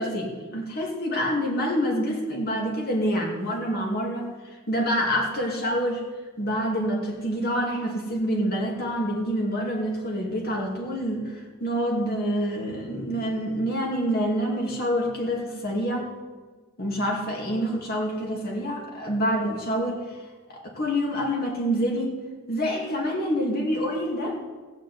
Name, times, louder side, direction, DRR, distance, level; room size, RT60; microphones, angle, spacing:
voice 1, 0.0-6.1 6.4-16.1 16.8-20.0 20.5-22.1 22.5-24.4, equal, 50° left, 0 dB, 2.6 m, -27 dB
17.0 x 6.3 x 8.2 m, 1.4 s
head